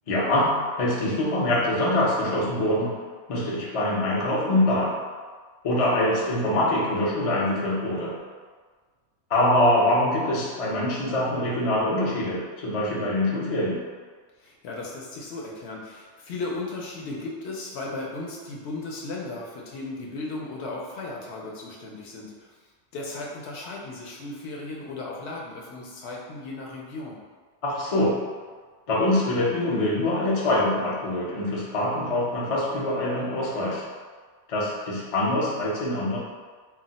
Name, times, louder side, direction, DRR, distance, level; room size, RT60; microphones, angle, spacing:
voice 1, 0.1-3.0 3.3-5.0 5.6-8.2 9.3-13.8 27.6-28.3 28.9-33.9 34.5-36.2, left 1 dB, 50° left, -5 dB, 0.4 m, -24 dB
voice 2, 14.4-22.5 22.9-27.2, left 2 dB, 70° left, -3 dB, 0.8 m, -36 dB
2.4 x 2.0 x 3.8 m, 1.5 s
omnidirectional pair, 1.3 m